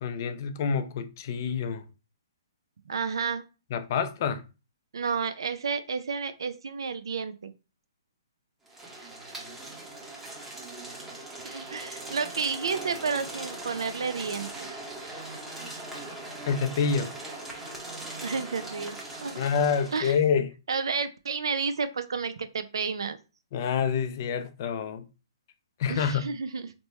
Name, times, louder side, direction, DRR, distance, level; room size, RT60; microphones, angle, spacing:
voice 1, 0.0-1.8 3.7-4.4 16.5-17.1 19.3-20.5 23.5-25.0 25.8-26.2, left 6 dB, 45° left, 0.4 m, -27 dB
voice 2, 2.9-3.4 4.9-7.5 11.4-14.5 18.2-19.4 19.9-20.2 20.7-23.2 25.9-26.7, right 5 dB, 75° right, 0.4 m, -31 dB
sound 1, 8.7-20.2, right 2 dB, 10° right, 0.9 m, -40 dB
2.9 x 2.1 x 4.1 m
hypercardioid pair, 145°, 2 cm